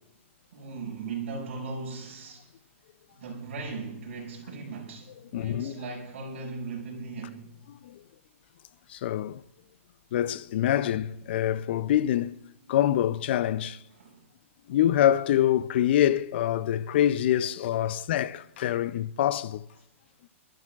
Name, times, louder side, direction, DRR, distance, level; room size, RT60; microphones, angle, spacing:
voice 1, 0.5-2.5 3.1-7.6 13.9-14.2, right 4 dB, 65° right, 5.8 m, -38 dB
voice 2, 5.3-5.8 7.8-8.0 8.9-9.4 10.1-12.4 12.7-13.8 14.7-19.6, left 11 dB, 50° left, 0.5 m, -25 dB
27.0 x 13.5 x 2.4 m
hypercardioid pair, 165°, 7 cm